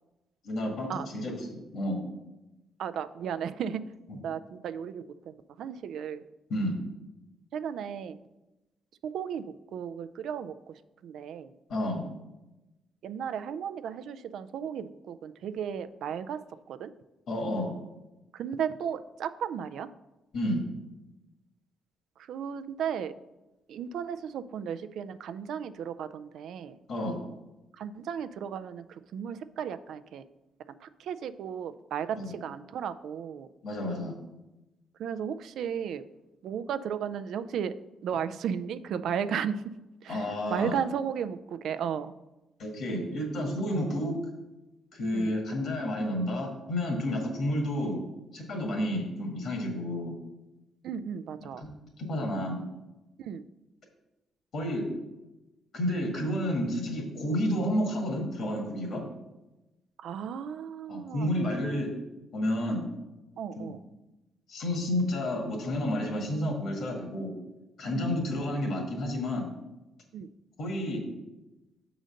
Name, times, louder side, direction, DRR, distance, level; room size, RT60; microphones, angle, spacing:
voice 1, 0.4-2.0 6.5-6.8 11.7-12.0 17.3-17.7 20.3-20.6 26.9-27.2 32.2-32.3 33.6-34.1 40.1-40.7 42.6-44.2 44.9-48.0 48.3-50.2 51.6-51.7 52.0-52.6 54.5-54.9 55.7-59.0 60.9-61.9 62.3-62.9 63.6-63.7 64.5-67.3 67.8-69.5 70.6-71.1, left 1 dB, 65° left, 2 dB, 1.8 m, -30 dB
voice 2, 2.8-3.8 4.2-6.2 7.5-8.2 9.0-9.4 9.7-11.5 13.0-16.4 16.7-16.9 18.3-19.9 22.2-23.1 23.7-26.8 27.8-30.2 30.8-33.5 35.0-36.0 36.4-37.7 38.0-39.6 40.0-42.1 45.1-45.3 50.8-51.6 53.2-53.5 60.0-61.3 63.4-63.8 67.9-68.3 70.1-70.3, right 8 dB, 75° right, 12 dB, 0.3 m, -35 dB
6.3 x 3.9 x 6.3 m, 1.0 s
cardioid pair, 90°, 0 cm